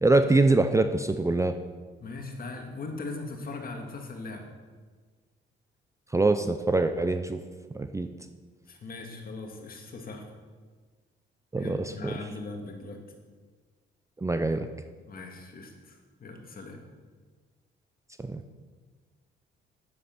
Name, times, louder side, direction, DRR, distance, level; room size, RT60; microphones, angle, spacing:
voice 1, 0.0-1.6 6.1-7.4 7.7-8.1 11.5-12.1 14.2-14.7 18.2-18.4, right 2 dB, 15° right, 8 dB, 0.5 m, -24 dB
voice 2, 2.0-4.5 8.7-10.3 11.6-13.0 15.1-16.8, left 3 dB, 45° left, 3 dB, 2.0 m, -40 dB
9.6 x 8.6 x 6.0 m, 1.5 s
cardioid pair, 90°, 20 cm